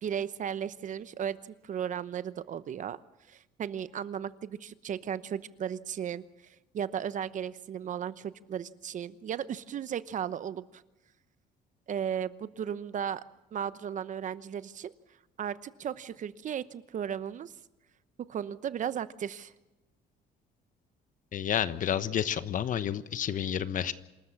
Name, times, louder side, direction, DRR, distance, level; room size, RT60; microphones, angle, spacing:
voice 1, 0.0-3.0 3.3-6.2 6.7-10.8 11.9-13.2 13.5-14.9 15.4-17.5 18.2-19.5, right 8 dB, 50° right, 15 dB, 1.0 m, -35 dB
voice 2, 21.3-23.9, left 9 dB, 50° left, 14 dB, 1.2 m, -30 dB
26.5 x 13.5 x 7.4 m, 1.0 s
cardioid pair, 110°, 17 cm